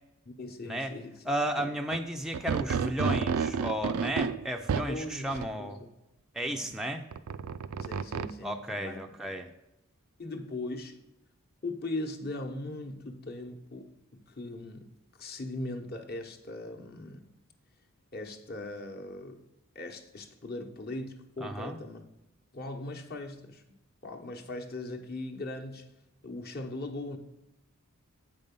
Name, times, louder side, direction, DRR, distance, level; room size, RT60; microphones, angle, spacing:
voice 1, 0.3-1.2 1.6-1.7 4.8-5.7 6.4-6.8 7.8-9.4 10.2-11.0 11.6-14.9 15.2-17.3 18.1-19.4 19.7-22.0 22.5-23.6 24.0-25.9 26.2-27.2, left 2 dB, 45° left, 1.0 m, -39 dB
voice 2, 1.3-5.8 6.3-7.0 8.4-9.5 21.4-21.8, right 1 dB, ahead, 0.4 m, -33 dB
sound 1, 1.9-2.0 2.3-4.9 5.3-5.5 7.1-8.3, right 6 dB, 75° right, 0.4 m, -30 dB
8.1 x 5.4 x 5.3 m
head